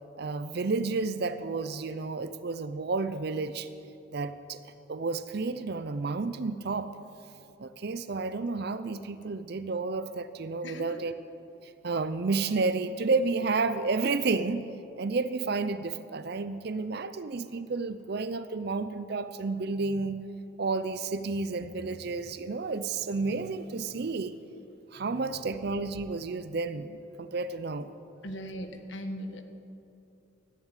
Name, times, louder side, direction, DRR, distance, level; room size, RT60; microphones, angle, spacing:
voice 1, 0.2-3.7 4.1-4.6 4.9-6.9 7.6-11.1 11.8-14.7 15.0-20.3 20.6-24.4 24.9-27.9, right 3 dB, 55° right, 12 dB, 0.5 m, -31 dB
voice 2, 10.6-11.0 28.2-29.4, equal, 70° left, 6 dB, 1.5 m, -38 dB
14.5 x 10.5 x 9.1 m, 2.7 s
head